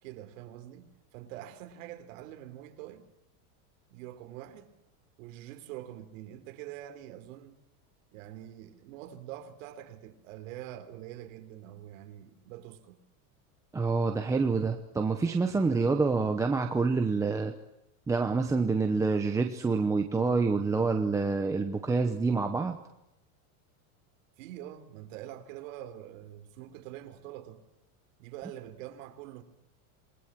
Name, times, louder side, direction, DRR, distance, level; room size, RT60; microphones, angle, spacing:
voice 1, 0.0-3.0 3.9-4.7 5.2-7.6 8.1-13.0 24.4-27.6 28.2-29.4, right 12 dB, 60° right, 3.7 m, -45 dB
voice 2, 13.7-17.5 18.1-22.8, right 4 dB, 5° right, 0.9 m, -27 dB
27.5 x 21.0 x 7.5 m
supercardioid pair, 170°, 43 cm